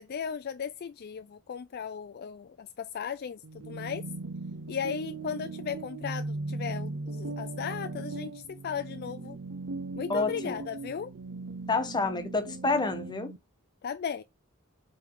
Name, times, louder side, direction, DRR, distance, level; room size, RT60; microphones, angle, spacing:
voice 1, 0.0-4.0 4.7-9.4 10.0-11.1 13.8-14.2, left 7 dB, 45° left, 0.4 m, -36 dB
sound 1, 3.4-13.4, right 3 dB, 55° right, 0.5 m, -38 dB
voice 2, 10.1-10.6 11.7-13.3, left 3 dB, 20° left, 1.1 m, -29 dB
7.6 x 3.4 x 3.8 m
head